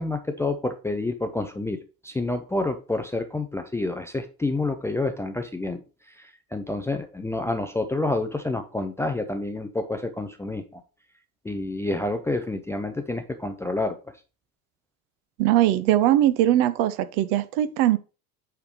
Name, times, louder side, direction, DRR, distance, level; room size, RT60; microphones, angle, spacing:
voice 1, 0.0-1.8 2.0-5.8 6.1-10.8 11.4-14.0, left 2 dB, 5° left, 0.5 m, -28 dB
voice 2, 15.4-18.0, right 13 dB, 45° right, 0.7 m, -20 dB
8.8 x 3.5 x 4.5 m
figure-of-eight pair, 70°, 46 cm